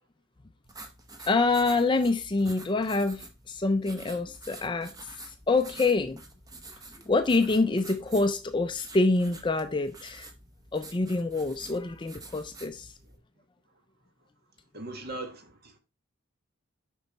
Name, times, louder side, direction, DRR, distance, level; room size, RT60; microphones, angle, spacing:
sound 1, 0.6-13.2, right 2 dB, 15° right, 0.8 m, -48 dB
voice 1, 1.3-4.9 5.5-6.2 7.1-10.3 10.7-12.9, left 3 dB, 20° left, 0.4 m, -26 dB
voice 2, 14.7-15.8, right 2 dB, 45° right, 1.3 m, -39 dB
6.8 x 5.4 x 4.0 m
head